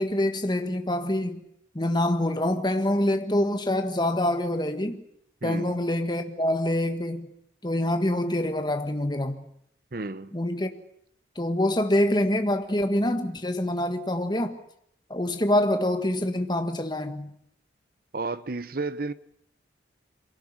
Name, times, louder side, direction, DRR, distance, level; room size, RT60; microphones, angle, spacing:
voice 1, 0.0-1.4 1.7-5.0 5.4-7.3 7.6-9.5 10.3-10.7 11.3-14.6 15.1-17.3, left 1 dB, 25° left, 1.6 m, -25 dB
voice 2, 5.4-5.8 9.9-10.3 18.1-19.1, right 3 dB, 50° right, 0.9 m, -32 dB
23.0 x 17.5 x 8.8 m
head